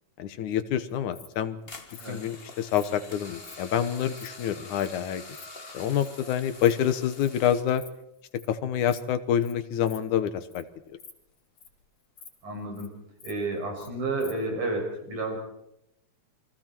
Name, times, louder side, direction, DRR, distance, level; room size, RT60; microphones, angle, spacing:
voice 1, 0.2-1.6 2.1-5.2 5.7-7.8 8.5-10.6, left 9 dB, 80° left, 11 dB, 2.6 m, -27 dB
Insect, 0.9-1.3 1.9-2.1 2.7-2.9 3.4-3.6 3.9-4.3 4.8-4.9 5.1-5.5 6.0-6.1 6.5-6.7 7.0-7.3 7.6-7.9 8.1-8.5 8.9-9.1 9.4-9.5 9.8-10.0 10.4-10.6 10.9-11.8 12.2-12.3 12.6-12.9 13.2-13.9 14.2-14.3, left 5 dB, 60° left, 4.2 m, -48 dB
sound 1, 1.7-7.6, left 3 dB, 30° left, 1.0 m, -46 dB
voice 2, 12.4-12.9 13.2-15.4, right 2 dB, 80° right, 1 dB, 8.2 m, -31 dB
29.0 x 23.5 x 4.6 m, 0.82 s
omnidirectional pair, 3.5 m